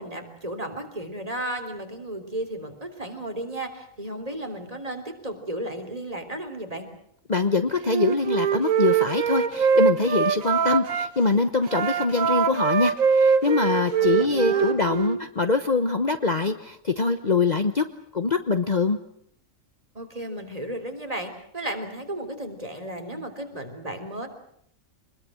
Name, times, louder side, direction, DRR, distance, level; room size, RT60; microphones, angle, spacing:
voice 1, 0.0-6.9 14.0-14.8 19.9-24.3, right 1 dB, 25° right, 5 dB, 3.7 m, -34 dB
voice 2, 7.3-17.8 18.1-19.0, left 4 dB, 35° left, 9 dB, 1.1 m, -24 dB
Wind instrument woodwind instrument, 7.8-11.1 11.6-15.2, right 7 dB, 80° right, 1.6 m, -23 dB
25.0 x 21.5 x 7.8 m, 0.69 s
omnidirectional pair, 1.4 m